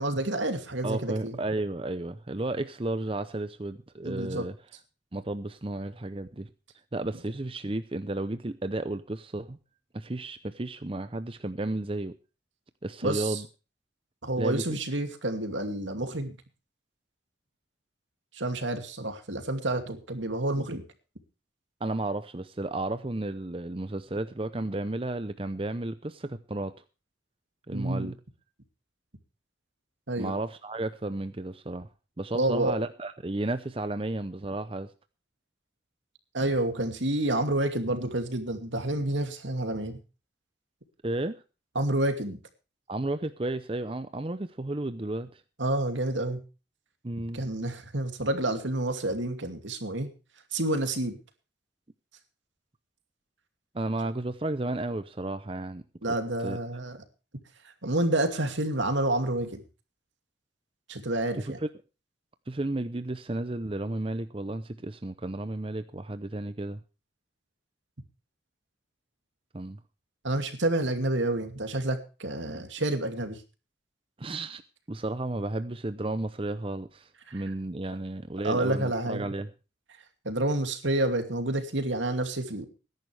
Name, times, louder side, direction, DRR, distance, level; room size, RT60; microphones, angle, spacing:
voice 1, 0.0-1.4 4.0-4.4 13.0-13.4 14.2-16.4 18.3-20.8 27.7-28.1 30.1-30.3 32.3-32.8 36.3-40.0 41.7-42.4 45.6-46.4 47.3-50.1 50.5-51.2 56.0-57.0 57.8-59.6 60.9-61.6 70.2-73.4 77.3-77.4 78.4-79.3 80.2-82.7, right 1 dB, 80° right, 7 dB, 2.6 m, -29 dB
voice 2, 0.8-4.6 5.1-6.5 6.9-9.6 9.9-12.1 12.8-13.5 14.4-15.0 21.8-26.7 27.7-28.1 30.2-31.9 32.2-34.9 41.0-41.4 42.9-45.4 47.0-47.4 53.7-55.8 56.4-56.6 61.4-61.6 62.5-66.8 69.5-69.8 74.2-74.6 74.9-79.5, right 2 dB, 30° right, 11 dB, 0.7 m, -33 dB
20.5 x 11.0 x 3.4 m, 0.33 s
head